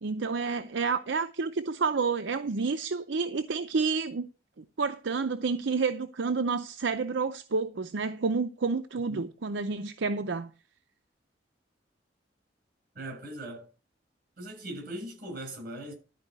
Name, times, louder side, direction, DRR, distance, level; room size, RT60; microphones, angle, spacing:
voice 1, 0.0-4.3 4.6-10.5, right 4 dB, 80° right, 0.6 m, -29 dB
voice 2, 12.9-13.7 14.4-15.9, right 1 dB, 55° right, 7.1 m, -39 dB
12.5 x 4.9 x 8.0 m
head